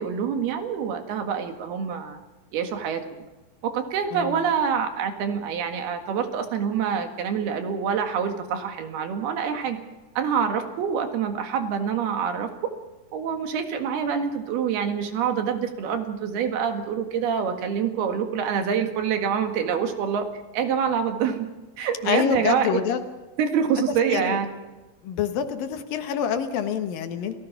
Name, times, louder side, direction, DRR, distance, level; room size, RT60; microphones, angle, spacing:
voice 1, 0.0-2.2 2.5-3.3 3.6-9.8 10.2-12.5 13.1-20.3 20.5-21.5 21.8-22.8 23.4-24.5, right 7 dB, 85° right, 6 dB, 3.8 m, -26 dB
voice 2, 4.1-4.5 22.0-23.0 24.1-24.4 25.0-27.3, left 8 dB, 70° left, 7 dB, 3.0 m, -26 dB
29.0 x 17.5 x 5.9 m, 1.2 s
omnidirectional pair, 4.4 m